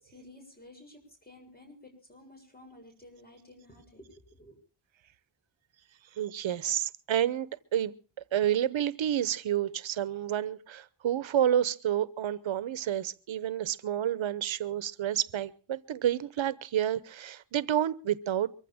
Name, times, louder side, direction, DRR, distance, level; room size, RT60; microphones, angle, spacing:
voice 1, 0.0-4.5, left 1 dB, 20° left, 7.2 m, -53 dB
voice 2, 6.2-7.9 8.3-18.7, right 10 dB, 85° right, 0.9 m, -29 dB
23.5 x 15.0 x 3.5 m
wide cardioid pair, 140°, 45 cm